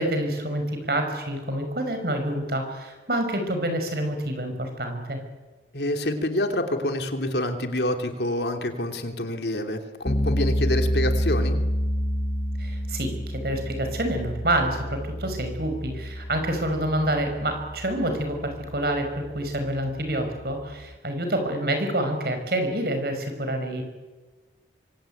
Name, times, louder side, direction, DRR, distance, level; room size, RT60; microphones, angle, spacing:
voice 1, 0.0-5.2 12.6-23.8, right 1 dB, 55° right, 6 dB, 6.2 m, -27 dB
voice 2, 5.7-11.6, left 1 dB, 70° left, 6 dB, 2.9 m, -27 dB
sound 1, 10.1-20.9, equal, 35° left, 1.5 m, -29 dB
25.5 x 24.5 x 9.3 m, 1.3 s
head